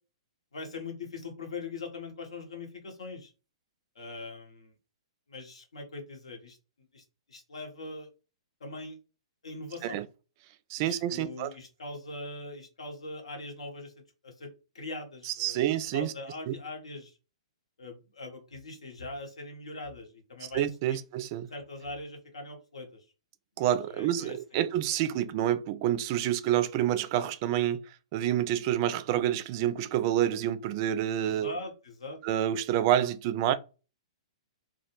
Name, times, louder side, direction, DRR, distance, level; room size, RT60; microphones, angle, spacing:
voice 1, 0.5-3.3 3.9-4.7 5.3-6.6 6.9-8.1 8.6-9.0 9.4-10.0 10.8-13.9 14.2-14.5 14.7-17.2 17.8-21.0 21.5-23.0 23.9-24.6 31.2-32.2, left 2 dB, 80° left, 0.9 m, -41 dB
voice 2, 10.7-11.5 15.2-16.1 16.5-16.6 20.5-21.5 23.6-31.5 32.2-33.5, right 11 dB, 40° right, 0.3 m, -28 dB
2.2 x 2.0 x 3.0 m
hypercardioid pair, 125°, 3 cm